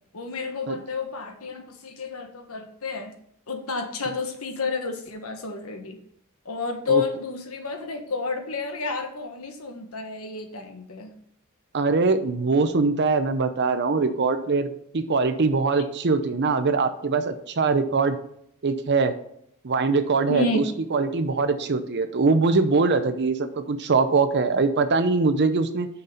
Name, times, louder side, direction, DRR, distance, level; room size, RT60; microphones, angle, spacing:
voice 1, 0.1-3.1 3.5-6.0 6.4-11.1 20.3-20.7, left 4 dB, 80° left, 5 dB, 1.3 m, -30 dB
voice 2, 11.7-18.2 18.6-19.1 19.6-20.6 20.9-25.9, right 4 dB, 55° right, 10 dB, 0.6 m, -22 dB
6.7 x 5.4 x 5.6 m, 0.71 s
head